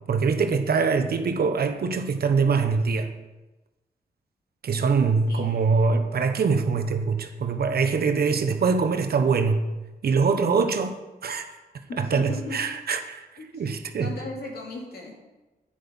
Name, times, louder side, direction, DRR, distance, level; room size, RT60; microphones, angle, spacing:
voice 1, 0.1-3.1 4.6-9.6 10.0-10.9 11.2-11.5 12.0-13.2 13.5-14.1, right 5 dB, 80° right, 7 dB, 1.2 m, -23 dB
voice 2, 5.3-5.6 11.9-12.6 13.4-13.6 14.0-15.2, left 2 dB, 75° left, -1 dB, 3.0 m, -37 dB
10.5 x 9.4 x 5.5 m, 1.1 s
cardioid pair, 85°, 16 cm